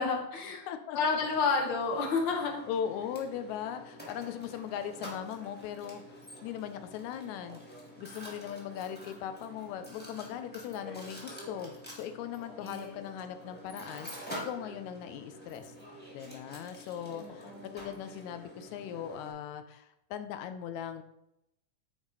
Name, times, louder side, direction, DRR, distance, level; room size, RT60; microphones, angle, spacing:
voice 1, 0.0-0.6 0.9-2.6 12.6-13.0 17.2-17.9, left 4 dB, 60° left, 1 dB, 1.2 m, -31 dB
voice 2, 0.7-1.0 1.4-1.6 2.7-7.6 8.0-15.7 16.1-21.0, left 9 dB, 80° left, 9 dB, 1.9 m, -39 dB
Mechanisms, 1.1-19.3, equal, 10° left, 0.4 m, -48 dB
8.9 x 3.6 x 4.8 m, 0.84 s
omnidirectional pair, 3.5 m